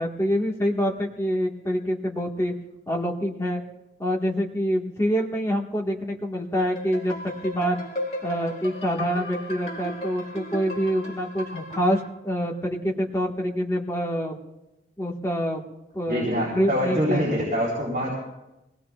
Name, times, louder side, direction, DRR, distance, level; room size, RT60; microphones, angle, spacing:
voice 1, 0.0-2.5 2.9-3.6 4.0-7.1 7.4-7.8 8.2-14.4 15.0-15.6 15.9-16.3 16.5-17.2, equal, 15° left, -1 dB, 1.7 m, -26 dB
sound 1, 6.6-12.1, left 1 dB, 35° left, 2.1 m, -36 dB
voice 2, 16.1-18.1, equal, 45° right, -5 dB, 4.3 m, -25 dB
23.0 x 18.5 x 2.5 m, 0.95 s
head